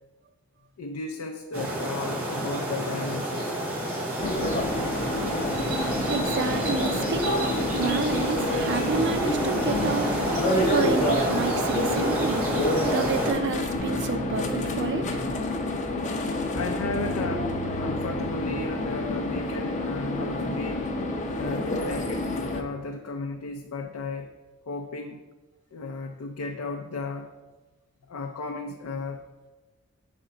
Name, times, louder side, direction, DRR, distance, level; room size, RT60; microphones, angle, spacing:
voice 1, 0.8-3.6 16.6-17.5 17.8-20.9 21.3-24.3 24.7-25.2 25.7-27.3 28.1-29.2, left 3 dB, 90° left, 3 dB, 0.5 m, -34 dB
sound 1, 1.5-13.3, right 1 dB, 90° right, 1.9 m, -29 dB
sound 2, 4.2-22.6, left 2 dB, 35° left, 0.5 m, -28 dB
voice 2, 5.6-12.4 12.8-15.2, right 4 dB, 55° right, 9 dB, 0.4 m, -30 dB
sound 3, 13.7-19.3, right 3 dB, 65° left, 0.8 m, -40 dB
6.7 x 4.3 x 3.7 m, 1.2 s
head